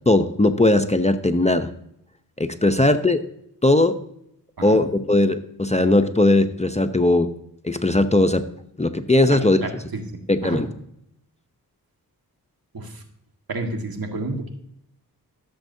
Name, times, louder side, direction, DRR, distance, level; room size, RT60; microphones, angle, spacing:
voice 1, 0.1-1.7 2.4-3.2 3.6-3.9 4.6-7.3 7.6-8.4 8.8-9.6 10.3-10.7, left 2 dB, 15° left, 8 dB, 0.7 m, -18 dB
voice 2, 9.3-10.0 10.4-10.6 12.7-13.0 13.5-14.5, right 2 dB, 65° right, 4 dB, 1.8 m, -30 dB
15.0 x 7.2 x 2.7 m, 0.75 s
cardioid pair, 40°, 39 cm